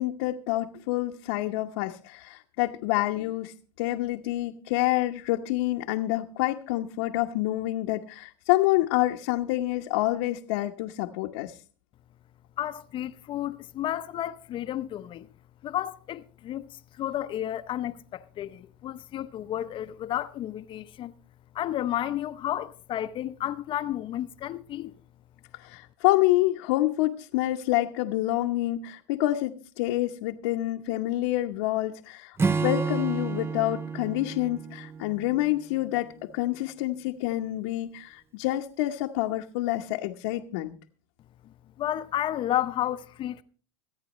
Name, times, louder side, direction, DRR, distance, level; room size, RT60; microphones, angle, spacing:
voice 1, 0.0-11.6 25.5-32.4 32.6-40.8, left 16 dB, 70° left, 1.0 m, -27 dB
voice 2, 12.6-15.3 15.6-21.1 21.5-24.9 41.8-43.4, left 12 dB, 40° left, 0.7 m, -32 dB
Acoustic guitar / Strum, 32.4-35.9, right 4 dB, 20° right, 0.6 m, -30 dB
26.0 x 9.0 x 3.1 m
hypercardioid pair, 100°, 13 cm